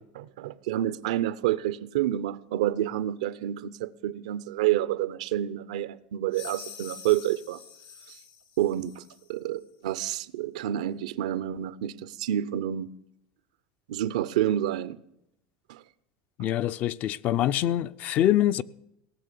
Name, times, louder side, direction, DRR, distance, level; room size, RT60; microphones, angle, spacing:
voice 1, 0.1-7.6 8.1-8.2 8.6-9.0 9.3-12.9 13.9-15.0 15.7-15.8, right 12 dB, 90° right, 0.6 m, -29 dB
sound 1, 6.3-9.3, left 7 dB, 80° left, 3.1 m, -46 dB
voice 2, 16.4-18.6, left 12 dB, 50° left, 0.5 m, -25 dB
18.0 x 7.0 x 8.3 m
supercardioid pair, 125°, 4 cm